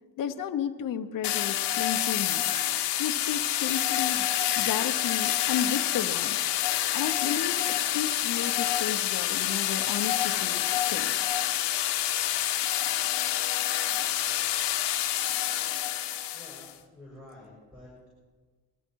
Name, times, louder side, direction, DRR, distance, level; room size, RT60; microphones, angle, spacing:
voice 1, 0.2-2.6 3.0-4.3 4.5-6.4 6.9-11.3, left 8 dB, 50° left, 6 dB, 0.8 m, -33 dB
sound 1, 1.2-16.7, left 12 dB, 80° left, 1.0 m, -27 dB
voice 2, 14.1-14.5 15.4-15.8 16.3-18.1, left 1 dB, 5° right, -6 dB, 6.5 m, -51 dB
20.0 x 13.5 x 4.6 m, 1.4 s
cardioid pair, 110°, 41 cm